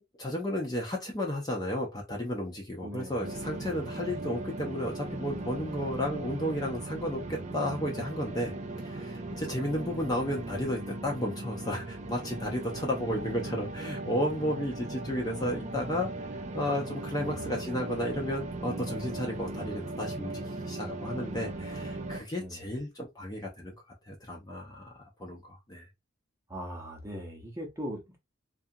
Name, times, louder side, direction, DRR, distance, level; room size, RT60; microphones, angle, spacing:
voice 1, 0.2-8.5 8.8-16.1 16.5-23.7 24.1-25.8, left 1 dB, 20° left, 0.5 m, -33 dB
voice 2, 2.8-3.2 17.2-17.4 22.4-22.6 26.5-28.2, equal, 15° right, 0.7 m, -39 dB
sound 1, 3.2-22.2, right 2 dB, 35° right, 0.4 m, -38 dB
2.7 x 2.4 x 2.6 m
head